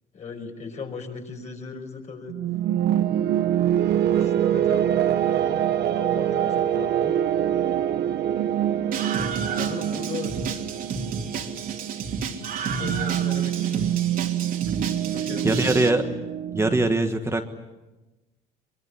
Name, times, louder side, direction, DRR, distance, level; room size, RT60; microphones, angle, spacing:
voice 1, 0.1-2.3 4.2-7.1 9.5-10.4 12.0-13.9 15.1-15.8, left 4 dB, 45° left, 3 dB, 5.7 m, -38 dB
sound 1, 2.3-16.9, right 10 dB, 75° right, 1.3 m, -25 dB
Screaming, 8.9-15.9, right 5 dB, 55° right, 2.9 m, -31 dB
voice 2, 15.4-16.1 16.5-17.5, right 2 dB, 15° right, 5 dB, 1.5 m, -22 dB
23.5 x 23.5 x 9.9 m, 1.1 s
cardioid pair, 110°, 17 cm